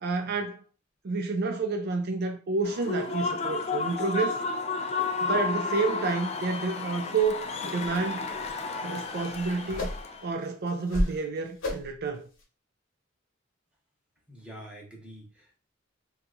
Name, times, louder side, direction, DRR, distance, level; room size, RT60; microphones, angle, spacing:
voice 1, 0.0-0.6 1.0-4.4 5.2-8.3 8.8-9.9 10.2-12.3, right 4 dB, 55° right, 0.4 m, -29 dB
Human voice / Cheering / Applause, 2.6-10.3, left 4 dB, 35° left, 0.4 m, -32 dB
sound 1, 7.2-7.3 7.8-8.0 8.3-8.6 8.9-10.2 10.7-11.2 11.6-12.0 12.4-12.5, left 1 dB, 80° left, 1.0 m, -33 dB
voice 2, 14.3-15.6, right 1 dB, 5° right, 0.9 m, -46 dB
2.7 x 2.3 x 3.8 m
head